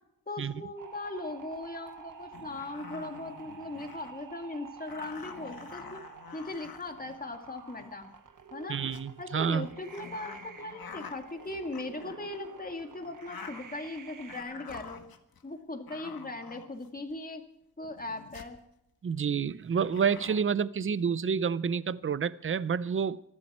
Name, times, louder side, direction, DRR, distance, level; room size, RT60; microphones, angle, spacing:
voice 1, 0.3-6.0 6.3-8.1 8.5-8.8 9.2-15.0 15.4-17.4 17.8-18.6, left 2 dB, 25° left, 2.1 m, -39 dB
sound 1, 0.8-14.4, right 6 dB, 55° right, 1.2 m, -49 dB
sound 2, 1.9-2.0 2.3-4.2 4.9-7.9 8.5-9.0 9.6-12.4 13.0-13.9 14.3-15.4 15.9-17.1 17.8-18.6 19.9-20.4, left 6 dB, 70° left, 1.6 m, -48 dB
voice 2, 8.7-9.7 19.0-23.2, right 6 dB, 35° right, 0.5 m, -29 dB
25.0 x 12.0 x 4.3 m
wide cardioid pair, 135°, 37 cm